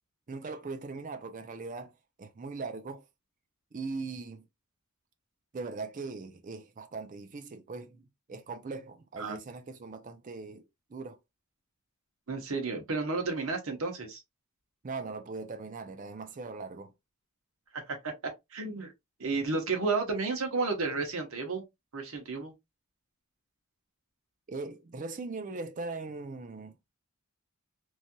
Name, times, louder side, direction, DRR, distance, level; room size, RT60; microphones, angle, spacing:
voice 1, 0.3-1.9 2.2-3.0 3.7-4.4 5.5-10.6 10.9-11.2 14.8-16.9 24.5-26.7, right 3 dB, 35° right, 0.4 m, -40 dB
voice 2, 12.3-14.2 17.7-18.1 18.5-18.9 19.2-21.6 21.9-22.5, right 3 dB, 65° right, 1.0 m, -32 dB
3.2 x 2.7 x 2.2 m
head